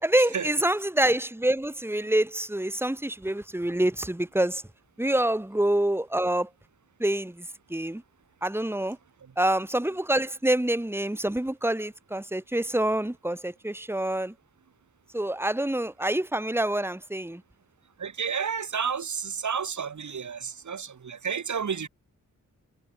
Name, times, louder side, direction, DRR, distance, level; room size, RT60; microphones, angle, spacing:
voice 1, 0.0-4.6 5.0-6.5 7.0-8.0 8.4-9.0 9.4-14.3 15.1-17.4, right 1 dB, 5° right, 3.5 m, -26 dB
voice 2, 18.0-21.9, right 6 dB, 65° right, 4.8 m, -31 dB
cardioid pair, 75°, 31 cm